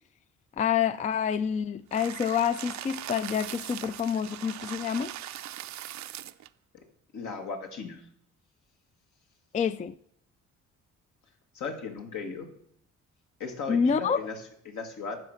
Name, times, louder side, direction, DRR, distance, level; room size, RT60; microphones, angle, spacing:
voice 1, 0.6-5.1 9.5-9.9 13.7-14.2, left 7 dB, 25° left, 0.3 m, -27 dB
sound 1, 1.9-6.5, right 13 dB, 65° right, 0.5 m, -40 dB
voice 2, 7.1-8.0 11.5-12.5 13.4-15.2, left 4 dB, 75° left, 1.9 m, -37 dB
12.0 x 4.8 x 6.5 m
cardioid pair, 90°, 30 cm